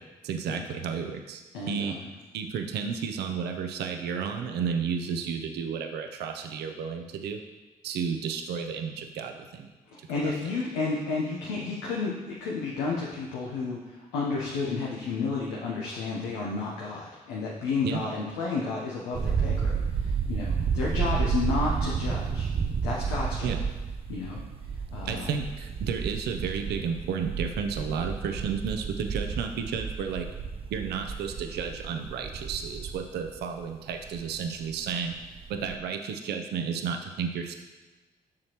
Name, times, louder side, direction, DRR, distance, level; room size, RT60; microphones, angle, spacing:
voice 1, 0.0-2.0 2.3-7.4 7.8-9.7 10.0-10.1 17.8-18.0 23.4-23.6 25.0-30.3 30.7-35.2 35.5-37.6, right 6 dB, 75° right, 5 dB, 0.6 m, -32 dB
voice 2, 1.5-2.0 10.1-22.5 22.8-23.5 24.1-24.4 24.9-25.3, left 4 dB, 85° left, -4 dB, 0.8 m, -31 dB
sound 1, 19.1-34.9 35.2-35.8, right 6 dB, 35° right, 0.4 m, -31 dB
7.4 x 6.4 x 3.0 m, 1.3 s
hypercardioid pair, 45°, 17 cm